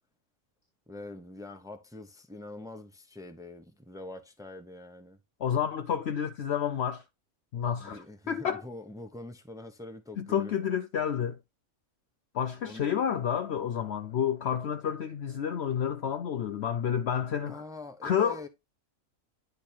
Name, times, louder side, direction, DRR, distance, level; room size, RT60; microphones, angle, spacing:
voice 1, 0.9-5.2 7.8-10.5 12.6-12.9 17.5-18.5, left 2 dB, 5° right, 0.7 m, -44 dB
voice 2, 5.4-7.0 7.5-8.6 10.2-11.4 12.3-17.6 18.0-18.5, left 8 dB, 65° left, 0.7 m, -30 dB
10.5 x 3.5 x 4.4 m
omnidirectional pair, 1.5 m